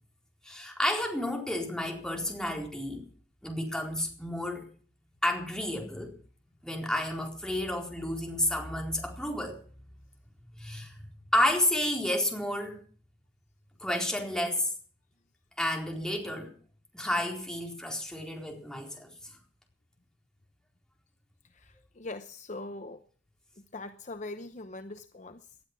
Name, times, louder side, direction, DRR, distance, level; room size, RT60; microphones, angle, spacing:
voice 1, 0.4-3.0 3.4-4.7 5.2-6.2 6.6-9.6 10.6-11.0 11.3-12.8 13.8-14.7 15.6-16.5 16.9-19.1, left 1 dB, 5° left, 1 dB, 4.2 m, -31 dB
voice 2, 21.5-23.0 23.7-25.6, left 2 dB, 40° left, 10 dB, 0.8 m, -42 dB
19.0 x 12.0 x 6.1 m, 0.43 s
head